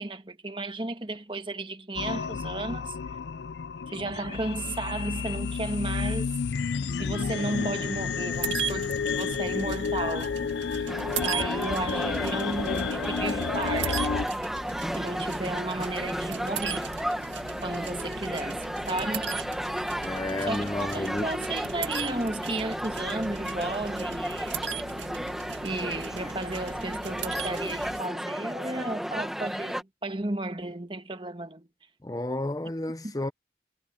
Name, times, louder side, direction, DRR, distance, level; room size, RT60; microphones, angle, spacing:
voice 1, 0.0-3.0 3.9-6.4 7.0-10.3 10.8-14.1 14.9-16.9 17.6-19.3 20.4-24.6 25.6-31.7 33.0-33.1, right 2 dB, 25° right, 1.4 m, -34 dB
sound 1, 2.0-14.3, left 5 dB, 75° left, 0.4 m, -31 dB
sound 2, 8.3-28.0, right 6 dB, 90° right, 2.1 m, -38 dB
sound 3, 10.9-29.8, equal, ahead, 1.2 m, -33 dB
voice 2, 20.0-21.3 32.0-33.3, left 1 dB, 20° left, 0.6 m, -31 dB
head